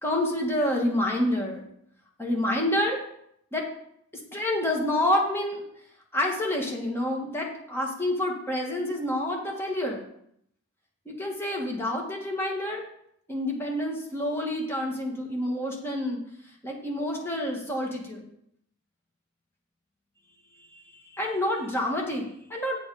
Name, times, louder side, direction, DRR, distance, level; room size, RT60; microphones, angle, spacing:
voice 1, 0.0-1.6 2.2-3.0 3.5-3.7 4.3-5.6 6.1-10.0 11.1-12.9 13.3-16.2 16.6-18.3 20.6-20.7 21.1-22.8, left 1 dB, 10° left, -1 dB, 1.9 m, -28 dB
8.3 x 7.7 x 5.0 m, 0.71 s
head